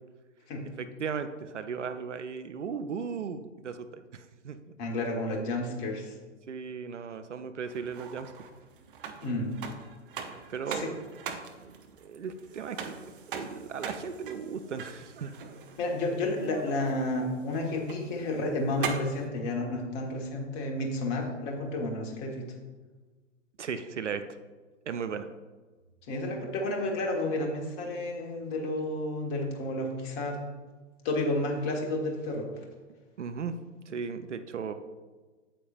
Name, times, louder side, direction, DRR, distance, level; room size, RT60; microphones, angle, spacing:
voice 1, 0.6-4.6 6.5-8.3 10.3-11.0 11.6-11.7 12.0-13.0 13.3-15.3 23.6-24.2 24.8-25.3 33.2-33.6 33.9-34.7, right 6 dB, 70° right, 9 dB, 0.7 m, -36 dB
voice 2, 4.8-6.1 9.2-9.5 10.7-10.9 15.8-22.4 26.1-30.4 31.0-32.5, left 2 dB, 30° left, 1 dB, 1.5 m, -31 dB
sound 1, 7.7-19.3, right 6 dB, 45° right, 0.9 m, -42 dB
8.7 x 8.5 x 2.6 m, 1.3 s
figure-of-eight pair, 110°, 37 cm